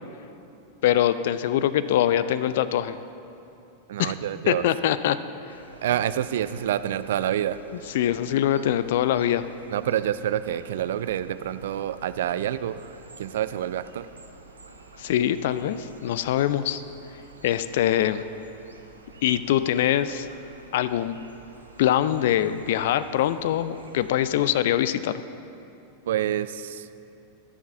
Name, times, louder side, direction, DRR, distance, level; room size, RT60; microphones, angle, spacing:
voice 1, 0.8-3.0 4.0-4.1 4.5-5.2 7.9-9.5 15.0-16.8 17.4-18.2 19.2-20.3 20.7-21.2 21.8-25.2, left 11 dB, 55° left, 14 dB, 0.4 m, -23 dB
voice 2, 3.9-4.7 5.8-7.6 9.7-14.1 26.1-26.9, right 11 dB, 60° right, 14 dB, 0.3 m, -27 dB
sound 1, 5.5-24.5, right 3 dB, 75° right, 0.8 m, -49 dB
12.5 x 7.1 x 5.6 m, 2.8 s
figure-of-eight pair, 90°, 0 cm